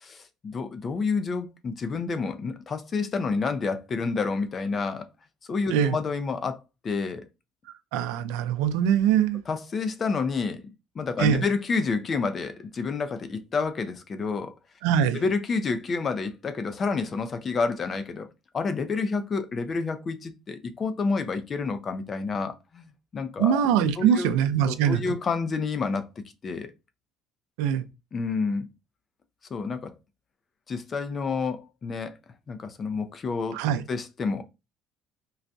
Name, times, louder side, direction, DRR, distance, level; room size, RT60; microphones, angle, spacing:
voice 1, 0.0-5.1 5.5-7.3 9.5-10.6 11.0-14.5 15.1-18.3 18.5-23.6 24.0-24.3 24.7-26.7 28.1-28.7 29.5-29.9 30.7-32.2 32.5-33.6 33.9-34.4, left 4 dB, 35° left, 0.5 m, -29 dB
voice 2, 7.9-9.4 11.2-11.4 14.8-15.2 23.4-25.0 27.6-27.8 33.5-33.8, right 9 dB, 90° right, 0.4 m, -23 dB
3.8 x 2.2 x 2.6 m
cardioid pair, 105°, 0 cm